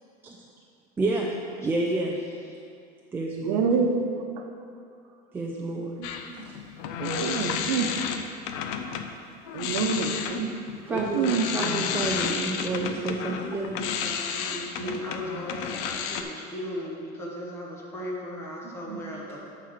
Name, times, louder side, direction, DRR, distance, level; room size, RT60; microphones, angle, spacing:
voice 1, 1.0-1.3 1.6-2.2 3.1-3.6 5.3-6.0 6.4-6.5 10.9-11.2 11.5-13.8, right 2 dB, 10° right, -2 dB, 0.4 m, -29 dB
voice 2, 3.4-4.5 5.7-6.5 7.0-7.9 8.8-8.9 9.5-10.5 10.9-11.7 12.2-12.4 12.9-13.4 14.8-14.9 18.6-19.0, right 5 dB, 75° right, 4 dB, 0.9 m, -28 dB
sound 1, 6.0-9.1 9.5-16.2, left 7 dB, 65° left, 0.6 m, -32 dB
voice 3, 13.7-19.4, left 1 dB, 15° left, -3 dB, 1.2 m, -37 dB
9.3 x 3.9 x 6.7 m, 2.4 s
cardioid pair, 170°, 20 cm